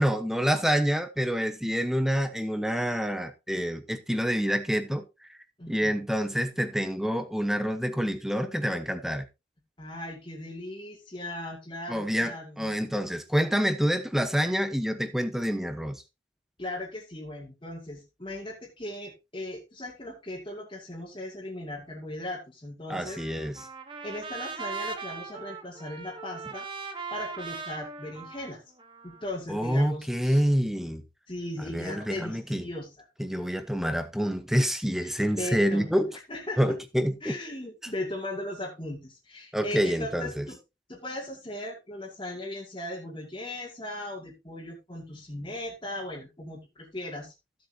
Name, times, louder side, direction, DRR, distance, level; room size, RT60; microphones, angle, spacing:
voice 1, 0.0-5.0 5.7-9.2 11.9-16.0 22.9-23.7 29.5-31.0 31.7-32.7 33.2-36.1 36.6-37.3 39.5-40.4, equal, ahead, 1.0 m, -27 dB
voice 2, 5.6-5.9 9.8-12.7 16.6-23.2 24.0-26.7 27.1-28.6 29.0-30.4 31.3-33.1 35.0-35.9 36.3-36.8 37.2-40.6 40.9-47.3, left 1 dB, 25° left, 2.4 m, -38 dB
Trumpet, 23.1-29.3, right 4 dB, 25° right, 1.3 m, -39 dB
15.5 x 7.7 x 2.8 m
head